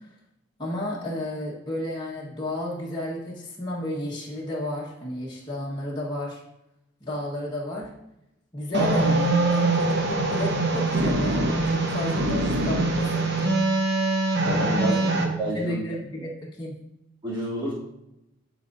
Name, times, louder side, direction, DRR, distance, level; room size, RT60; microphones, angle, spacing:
voice 1, 0.6-6.4 7.0-7.9 8.5-13.6 14.9-15.3 15.5-16.8, left 1 dB, 20° left, -6 dB, 1.3 m, -32 dB
sound 1, 8.7-15.2, right 2 dB, 55° right, 1.0 m, -23 dB
voice 2, 14.4-15.8 17.2-17.7, right 1 dB, 20° right, -8 dB, 2.6 m, -29 dB
11.5 x 5.1 x 2.6 m, 0.88 s
head